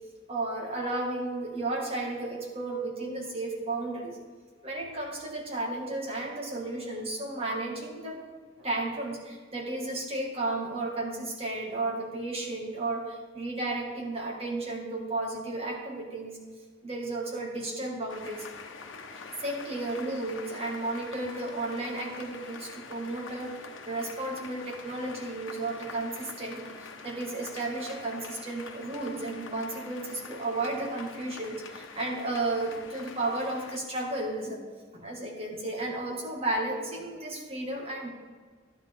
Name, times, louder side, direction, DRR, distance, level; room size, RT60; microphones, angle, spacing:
voice 1, 0.3-4.2 4.6-8.2 8.6-16.4 16.8-18.5 19.4-23.5 23.9-34.6 34.9-38.1, right 2 dB, 30° right, -1 dB, 2.2 m, -33 dB
sound 1, 18.1-33.8, left 4 dB, 80° left, 1.0 m, -45 dB
12.0 x 10.5 x 3.8 m, 1.5 s
head